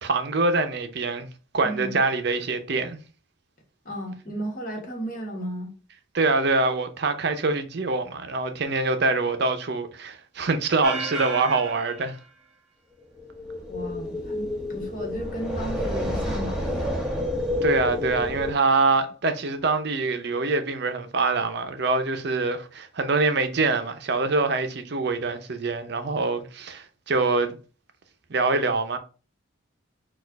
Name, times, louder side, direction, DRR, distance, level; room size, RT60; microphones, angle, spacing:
voice 1, 0.0-1.3 1.5-3.0 6.1-12.2 17.6-27.6 28.3-29.0, right 3 dB, 55° right, 0.6 m, -24 dB
voice 2, 1.6-2.0 3.8-5.7 13.7-17.0, equal, 45° left, 1.4 m, -34 dB
sound 1, 10.8-12.0 13.2-18.5, left 1 dB, 5° right, 0.7 m, -30 dB
4.3 x 2.4 x 4.5 m
head